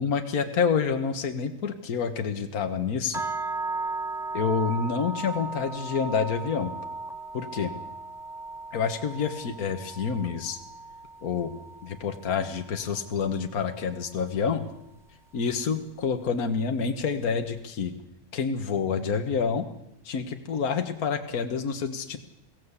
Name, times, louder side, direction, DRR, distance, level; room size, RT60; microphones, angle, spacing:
voice 1, 0.0-3.2 4.3-6.7 7.3-7.7 8.7-10.6 11.2-11.5 11.8-14.7 15.3-17.9 18.3-19.7 20.1-22.2, left 6 dB, 70° left, 6 dB, 1.8 m, -28 dB
sound 1, 3.1-13.2, right 3 dB, 5° right, 0.6 m, -36 dB
22.5 x 16.0 x 8.2 m, 0.88 s
omnidirectional pair, 1.6 m